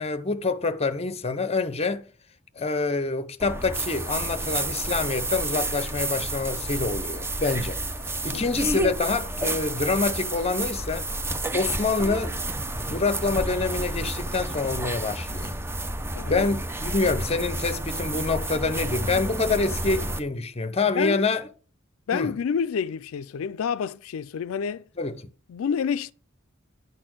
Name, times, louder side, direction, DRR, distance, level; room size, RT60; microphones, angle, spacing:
voice 1, 0.0-2.1 2.6-7.8 8.2-11.1 11.5-12.6 12.9-15.6 16.3-21.5 22.1-22.3 25.0-25.3, left 3 dB, 30° left, 0.8 m, -26 dB
sound 1, 3.4-20.2, right 1 dB, 10° right, 0.7 m, -30 dB
voice 2, 16.1-16.5 21.0-21.2 22.1-24.8 25.5-26.1, left 6 dB, 85° left, 0.4 m, -28 dB
11.0 x 4.3 x 7.6 m
head